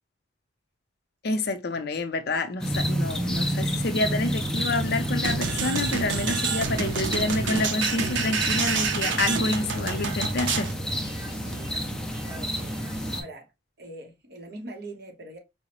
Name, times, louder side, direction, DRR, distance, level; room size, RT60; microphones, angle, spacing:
voice 1, 1.2-10.7, left 2 dB, 55° left, 0.5 m, -28 dB
sound 1, 2.6-13.2, equal, 5° left, 0.4 m, -30 dB
sound 2, 4.4-10.7 11.0-13.2, right 1 dB, 35° right, 1.8 m, -48 dB
sound 3, 5.2-10.7, right 5 dB, 80° right, 0.6 m, -28 dB
voice 2, 12.2-12.7 13.1-13.5 13.8-15.4, right 2 dB, 60° right, 0.9 m, -42 dB
4.7 x 2.0 x 2.9 m
head